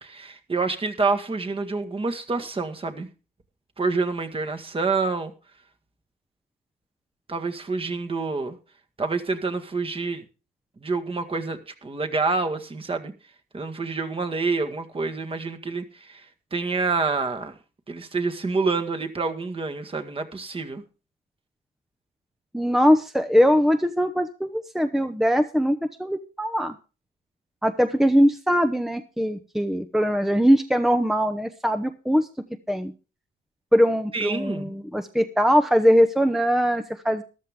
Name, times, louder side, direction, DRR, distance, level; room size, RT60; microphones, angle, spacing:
voice 1, 0.0-3.1 3.8-5.3 7.3-8.6 9.0-10.2 10.8-13.1 13.5-17.5 17.9-20.8 34.1-34.7, right 4 dB, 25° right, 5 dB, 1.8 m, -27 dB
voice 2, 22.5-26.7 27.6-32.3 32.7-32.9 33.7-37.2, equal, ahead, 10 dB, 0.8 m, -21 dB
13.5 x 12.5 x 3.7 m, 0.33 s
cardioid pair, 90°, 20 cm